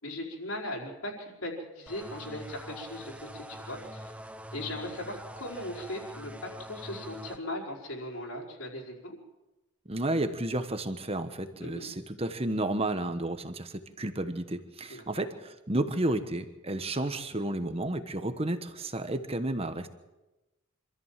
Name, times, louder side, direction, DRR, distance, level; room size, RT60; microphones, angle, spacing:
voice 1, 0.0-4.1 4.5-6.3 6.7-9.2 11.6-11.9 14.9-15.2, left 1 dB, 70° left, -3 dB, 4.9 m, -38 dB
sound 1, 1.9-7.4, equal, 5° right, 0.8 m, -44 dB
voice 2, 9.9-19.9, right 1 dB, 25° right, 9 dB, 1.2 m, -32 dB
26.0 x 14.0 x 7.5 m, 1.0 s
head